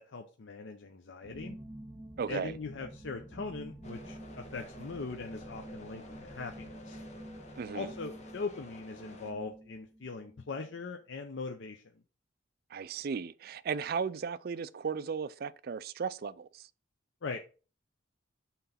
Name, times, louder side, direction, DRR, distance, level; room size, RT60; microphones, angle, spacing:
voice 1, 0.0-1.6 2.3-7.0 7.7-11.8 17.2-17.5, left 4 dB, 65° left, 0.6 m, -41 dB
sound 1, 1.2-10.7, right 1 dB, ahead, 1.7 m, -48 dB
voice 2, 2.2-2.5 7.6-7.9 12.7-16.7, right 6 dB, 50° right, 0.4 m, -36 dB
sound 2, 3.8-9.3, left 1 dB, 35° left, 1.2 m, -52 dB
5.9 x 3.9 x 5.6 m
head